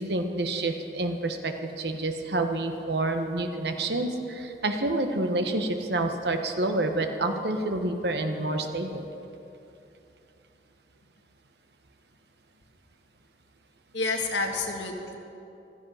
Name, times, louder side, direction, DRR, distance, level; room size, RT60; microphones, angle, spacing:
voice 1, 0.0-9.1, right 2 dB, 70° right, 6 dB, 1.2 m, -28 dB
voice 2, 13.9-15.2, left 3 dB, 85° left, 2 dB, 1.7 m, -29 dB
15.5 x 13.5 x 5.7 m, 2.8 s
head